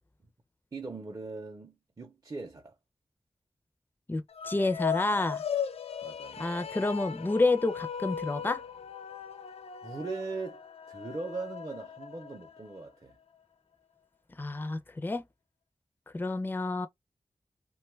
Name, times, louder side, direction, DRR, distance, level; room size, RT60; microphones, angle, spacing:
voice 1, 0.7-2.8 6.0-6.5 9.8-10.6 10.9-13.2, right 3 dB, 35° right, 0.5 m, -40 dB
voice 2, 4.1-5.4 6.4-8.6 14.4-15.2 16.1-16.9, left 2 dB, 20° left, 0.4 m, -29 dB
sound 1, 4.3-12.8, left 8 dB, 90° left, 0.4 m, -38 dB
2.9 x 2.2 x 3.1 m
wide cardioid pair, 80°, 10 cm